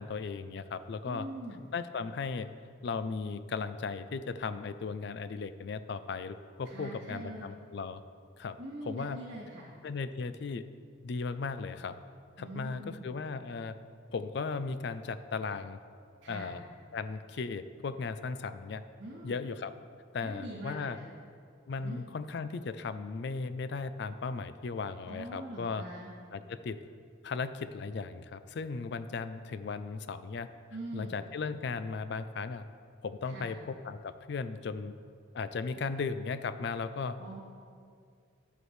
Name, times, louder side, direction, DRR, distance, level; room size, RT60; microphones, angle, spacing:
voice 1, 0.0-1.3 1.7-2.5 2.8-8.0 8.4-8.6 8.9-9.2 9.8-10.6 11.0-12.0 12.4-13.8 14.1-15.8 16.3-16.6 16.9-18.8 19.2-19.7 20.1-21.0 21.7-25.8 26.3-26.8 27.2-30.5 30.9-32.6 33.0-34.9 35.3-37.2, left 4 dB, 55° left, 12 dB, 0.4 m, -36 dB
voice 2, 1.1-1.7 6.6-7.5 8.6-9.7 12.4-13.1 16.2-16.6 19.0-19.4 20.2-21.0 21.8-22.0 25.1-26.1 30.7-31.2 33.2-33.6 37.2-37.4, right 1 dB, 70° right, -9 dB, 2.2 m, -43 dB
11.5 x 7.8 x 3.2 m, 2.2 s
head